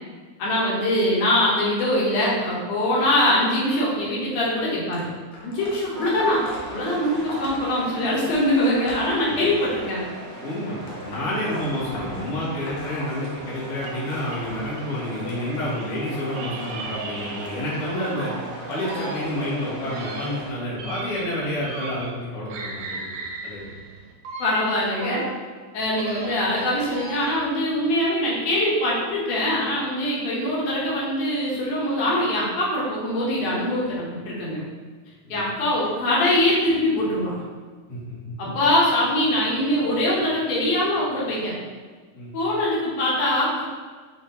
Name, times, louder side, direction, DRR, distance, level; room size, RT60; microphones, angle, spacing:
voice 1, 0.4-5.1 5.4-10.0 24.4-25.2 25.7-34.6 35.3-37.4 38.4-41.5 42.3-43.6, left 1 dB, 85° left, -6 dB, 2.5 m, -23 dB
sound 1, 4.9-10.1 10.8-13.8 14.1-19.5 20.3-20.5 21.6-21.7 22.5-22.6 23.3-23.4, left 1 dB, 70° left, 1.4 m, -41 dB
sound 2, 5.9-20.5, right 2 dB, 60° right, 1.1 m, -37 dB
voice 2, 10.4-18.3 18.7-23.1 23.4-23.7 35.2-35.4 37.9-38.3 42.1-42.3, left 1 dB, 55° left, -8 dB, 2.2 m, -29 dB
sound 3, 13.8-15.9 16.3-18.5 18.8-22.2 22.5-25.4 25.8-27.5, right 3 dB, 80° right, 1.7 m, -37 dB
7.4 x 2.6 x 2.7 m, 1.5 s
omnidirectional pair, 3.5 m